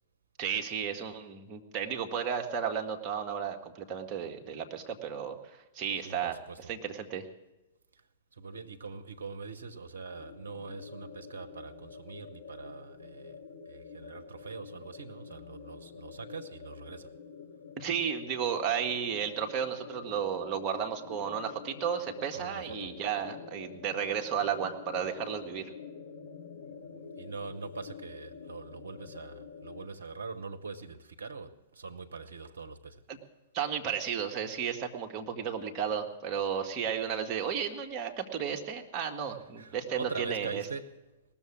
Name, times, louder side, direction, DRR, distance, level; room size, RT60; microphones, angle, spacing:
voice 1, 0.4-6.4 6.7-7.3 17.8-25.7 33.1-33.2 33.5-40.6, right 7 dB, 35° right, 1.6 m, -33 dB
voice 2, 6.0-6.6 7.9-8.0 8.3-17.1 22.3-22.9 27.2-33.0 39.3-40.9, right 4 dB, 75° right, 0.9 m, -43 dB
sound 1, 10.1-29.8, left 5 dB, 60° left, 2.1 m, -48 dB
18.5 x 7.1 x 8.7 m
figure-of-eight pair, 110°, 0 cm